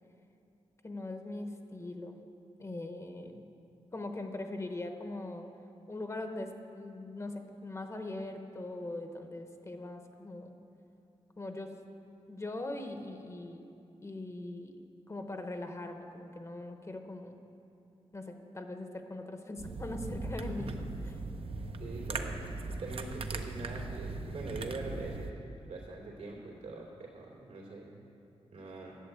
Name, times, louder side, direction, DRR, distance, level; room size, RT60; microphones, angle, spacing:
voice 1, 0.8-2.2 2.6-3.5 3.9-5.5 5.9-10.5 11.4-11.7 12.3-13.6 14.0-14.8 15.1-17.3 18.1-20.7, left 2 dB, 25° left, 5 dB, 0.9 m, -41 dB
sound 1, 19.6-25.3, right 3 dB, 55° right, 0.7 m, -39 dB
voice 2, 21.8-28.0 28.5-29.0, right 2 dB, 80° right, -1 dB, 2.9 m, -43 dB
11.5 x 7.8 x 8.1 m, 2.7 s
wide cardioid pair, 135°, 11 cm